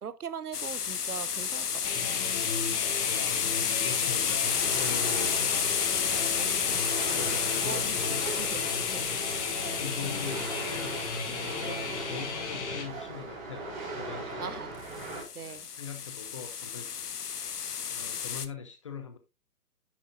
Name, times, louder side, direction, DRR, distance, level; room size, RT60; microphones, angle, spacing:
voice 1, 0.0-1.8 5.3-5.5 6.4-6.8 7.2-9.3 11.6-11.9 14.4-14.7 15.3-15.7, right 7 dB, 70° right, 1.0 m, -41 dB
sound 1, 0.5-12.0 14.9-18.5, left 7 dB, 70° left, 1.0 m, -31 dB
sound 2, 1.8-12.8, left 5 dB, 45° left, 2.8 m, -35 dB
voice 2, 3.0-5.4 6.0-6.4 7.1-8.2 9.7-11.0 11.3-14.6 15.4-17.3 17.9-19.2, left 6 dB, 20° left, 0.5 m, -42 dB
sound 3, 4.4-15.2, right 2 dB, 30° right, 4.3 m, -40 dB
10.5 x 7.3 x 2.5 m
figure-of-eight pair, 125°, 47 cm